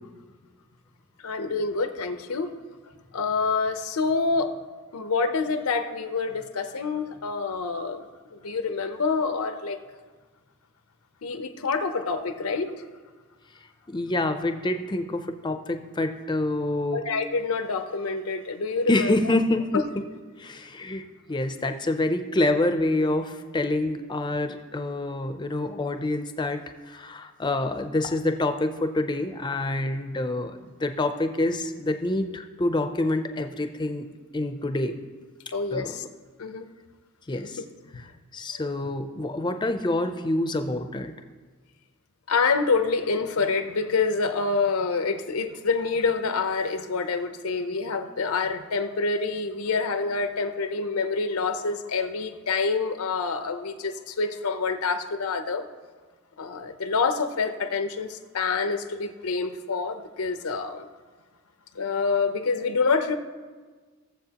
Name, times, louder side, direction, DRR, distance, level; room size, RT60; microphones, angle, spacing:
voice 1, 1.2-2.5 3.1-4.5 4.9-8.0 8.3-9.8 11.2-12.7 16.9-19.3 19.7-19.8 35.5-36.0 36.4-36.7 37.4-37.5 37.9-38.0 42.3-55.6 56.4-60.9 61.8-63.2, left 4 dB, 85° left, 8 dB, 0.7 m, -27 dB
voice 2, 13.9-17.0 18.9-19.8 20.4-21.0 21.3-26.6 26.9-34.1 34.3-35.0 35.7-36.0 37.3-37.6 38.3-41.1, left 2 dB, 20° left, 7 dB, 0.5 m, -27 dB
16.5 x 7.4 x 2.9 m, 1.4 s
head